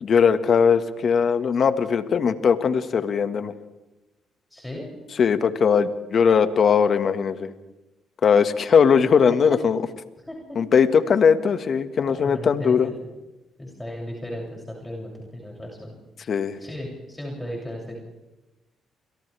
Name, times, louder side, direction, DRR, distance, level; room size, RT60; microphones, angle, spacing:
voice 1, 0.0-3.5 5.2-7.5 8.2-9.8 10.6-12.9 16.3-16.6, left 6 dB, 55° left, 10 dB, 1.7 m, -19 dB
voice 2, 4.5-4.9 10.3-10.4 12.0-13.0 13.6-16.0 16.6-18.0, equal, 10° left, -2 dB, 7.2 m, -35 dB
29.5 x 25.5 x 3.5 m, 1.0 s
supercardioid pair, 60°, 0 cm